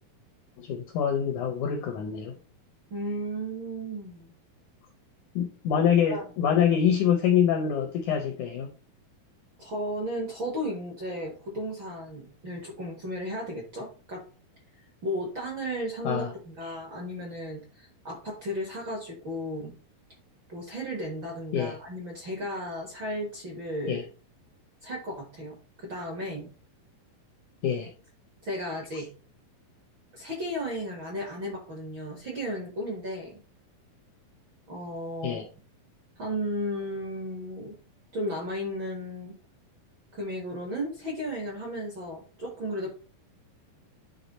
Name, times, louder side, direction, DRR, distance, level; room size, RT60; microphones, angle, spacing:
voice 1, 0.6-2.4 5.4-8.7 16.0-16.3 16.6-16.8 21.5-21.8 23.9-24.0 27.6-27.9 28.9-29.0 35.2-35.4, left 8 dB, 80° left, 5 dB, 1.7 m, -25 dB
voice 2, 2.9-4.3 6.1-6.2 9.6-14.2 15.0-19.7 20.5-24.0 24.8-26.5 28.4-29.1 30.1-33.4 34.7-35.4 36.2-37.7 38.1-39.3 40.1-42.9, equal, 55° right, 0 dB, 1.4 m, -34 dB
10.0 x 3.4 x 4.1 m, 0.38 s
omnidirectional pair, 4.3 m